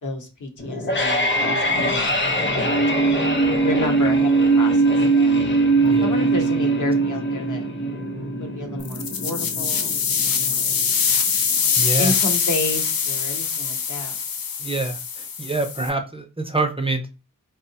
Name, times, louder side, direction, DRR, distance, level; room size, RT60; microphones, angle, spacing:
voice 1, 0.0-3.3 3.6-5.4 6.0-7.7 8.4-10.9 12.0-14.1, left 2 dB, 60° left, 3 dB, 0.8 m, -31 dB
sound 1, 0.6-11.6, right 2 dB, 35° left, 0.8 m, -21 dB
voice 2, 2.4-2.9 5.8-6.2 11.8-12.1 14.6-17.1, right 3 dB, 15° right, 6 dB, 0.4 m, -26 dB
sound 2, 8.8-15.9, left 6 dB, 90° left, 0.5 m, -23 dB
2.7 x 2.0 x 2.7 m, 0.30 s
cardioid pair, 40°, 34 cm